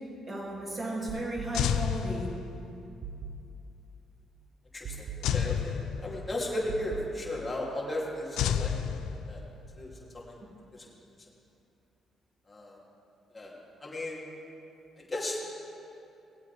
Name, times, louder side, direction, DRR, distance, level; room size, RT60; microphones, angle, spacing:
voice 1, 0.3-2.3, right 2 dB, 35° right, -3 dB, 2.7 m, -35 dB
sound 1, 1.1-2.1 3.0-3.9 4.8-5.9 6.7-7.8, right 5 dB, 70° right, 0.6 m, -43 dB
sound 2, 1.5-2.8 5.2-6.5 8.4-9.7, left 8 dB, 85° left, 0.4 m, -30 dB
voice 2, 4.7-5.1 5.3-8.7 9.3-9.4 9.8-9.9 10.1-10.2 10.8-10.9 12.5-12.8 13.3-13.5 13.8-14.2 15.1-15.4, left 1 dB, 20° left, -5 dB, 2.9 m, -35 dB
18.5 x 8.2 x 3.5 m, 2.7 s
cardioid pair, 90°, 0 cm